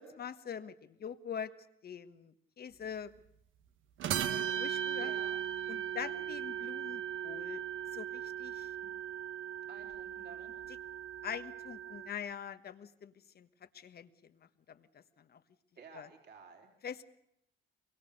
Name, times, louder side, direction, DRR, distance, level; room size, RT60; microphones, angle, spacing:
voice 1, 0.0-1.5 1.8-3.1 4.4-5.2 5.7-7.6 7.9-8.7 11.2-13.5 13.7-15.4 15.9-16.1 16.8-17.0, left 8 dB, 50° left, 11 dB, 1.4 m, -44 dB
sound 1, 4.0-12.1, right 9 dB, 80° right, 1.2 m, -38 dB
voice 2, 5.0-5.4 9.7-10.5 15.8-16.7, right 5 dB, 55° right, 1 dB, 3.7 m, -53 dB
23.5 x 22.5 x 6.6 m, 0.76 s
cardioid pair, 90°, 20 cm